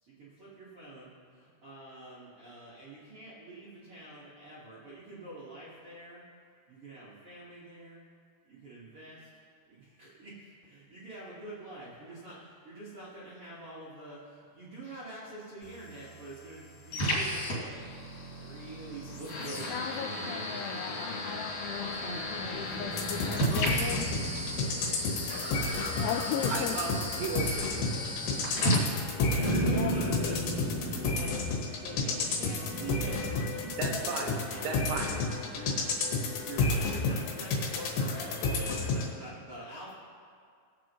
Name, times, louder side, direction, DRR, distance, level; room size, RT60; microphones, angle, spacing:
voice 1, 0.0-6.2 6.7-8.0 8.5-9.3 9.7-17.8 18.3-19.8 25.3-26.6 29.4-30.4 30.7-31.1 31.8-35.2 35.5-35.7 36.1-39.9, right 1 dB, 60° right, -9 dB, 1.5 m, -45 dB
sound 1, 15.6-29.6, equal, 50° left, 3.6 m, -35 dB
voice 2, 19.7-24.1 26.0-26.8 29.5-30.4 31.1-31.5, left 8 dB, 90° left, 3 dB, 2.4 m, -37 dB
sound 2, 21.6-33.9, right 2 dB, 15° left, 1.6 m, -38 dB
sound 3, 22.9-39.1, left 3 dB, 70° left, 3.4 m, -32 dB
voice 3, 26.5-27.9 33.8-34.3 34.6-35.1, right 4 dB, 75° right, 1 dB, 3.0 m, -35 dB
21.0 x 7.8 x 3.1 m, 2.2 s
omnidirectional pair, 5.5 m